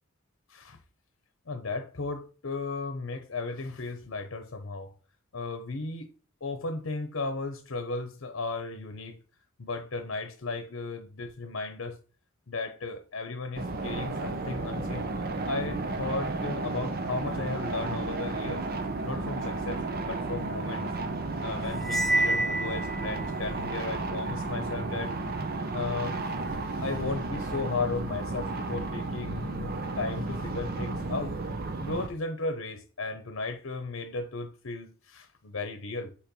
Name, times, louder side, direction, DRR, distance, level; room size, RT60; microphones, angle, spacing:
voice 1, 1.5-4.9 5.3-6.1 6.4-9.2 9.6-12.0 12.5-15.1 15.5-18.7 19.0-20.9 21.4-25.1 25.7-26.2 26.5-31.3 31.8-36.1, left 3 dB, 75° left, 0.8 m, -35 dB
sound 1, 13.5-32.1, right 3 dB, 50° right, 0.7 m, -33 dB
Cymbal, 21.8-23.3, right 1 dB, ahead, 0.3 m, -27 dB
4.5 x 4.3 x 5.3 m
head